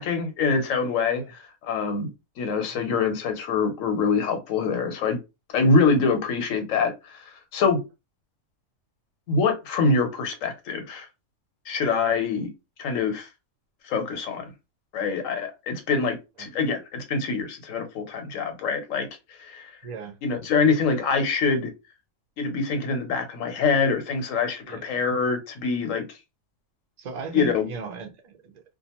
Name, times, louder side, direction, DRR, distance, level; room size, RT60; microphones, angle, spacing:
voice 1, 0.0-1.2 1.7-2.1 2.4-5.2 5.5-6.9 7.5-7.8 9.3-11.1 11.7-12.5 12.8-13.3 13.9-14.4 14.9-19.1 19.4-19.6 20.2-21.7 22.4-26.0 27.3-27.7, left 4 dB, 80° left, 1.1 m, -24 dB
voice 2, 19.8-20.2 24.7-24.8 27.0-28.6, right 6 dB, 55° right, 0.4 m, -37 dB
2.4 x 2.2 x 2.9 m
omnidirectional pair, 1.3 m